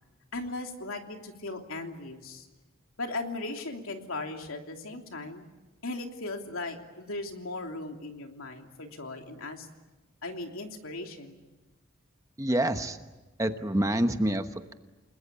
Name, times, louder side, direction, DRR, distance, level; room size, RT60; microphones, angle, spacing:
voice 1, 0.3-2.5 3.0-5.4 5.8-9.7 10.2-11.4, left 2 dB, 90° left, 3 dB, 3.1 m, -37 dB
voice 2, 12.4-13.0 13.4-14.7, right 1 dB, 15° right, 8 dB, 1.1 m, -27 dB
29.5 x 21.0 x 8.6 m, 1.2 s
head